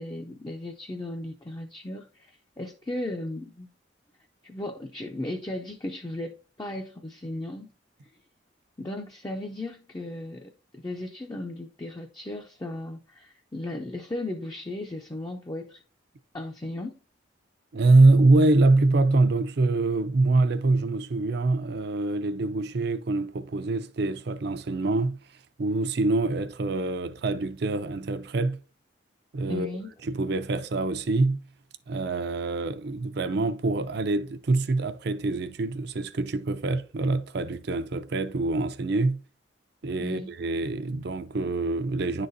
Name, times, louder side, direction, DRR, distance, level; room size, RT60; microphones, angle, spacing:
voice 1, 0.0-3.7 4.4-7.7 8.8-10.5 10.8-15.8 16.3-17.0 29.5-29.9 40.0-40.3, left 1 dB, 20° left, 0.4 m, -36 dB
voice 2, 17.7-25.2 25.6-28.6 29.3-29.7 30.0-31.4 31.9-39.2 39.8-42.3, right 2 dB, 60° right, 0.5 m, -24 dB
10.0 x 3.9 x 2.6 m
head